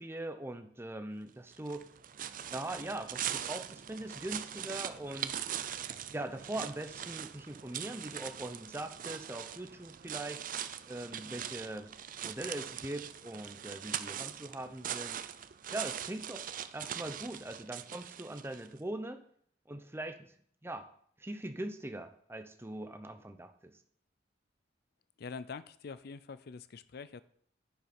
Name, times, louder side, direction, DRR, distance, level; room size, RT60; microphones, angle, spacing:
voice 1, 0.0-1.8 2.5-5.4 6.1-10.4 10.9-11.9 12.2-15.2 15.7-19.2 19.7-20.3 20.6-20.9 21.2-23.5, right 1 dB, 15° right, 8 dB, 0.8 m, -41 dB
sound 1, 1.5-18.7, right 9 dB, 45° right, 0.5 m, -41 dB
voice 2, 25.2-27.2, left 5 dB, 55° left, 15 dB, 0.4 m, -45 dB
10.5 x 9.5 x 4.4 m, 0.62 s
head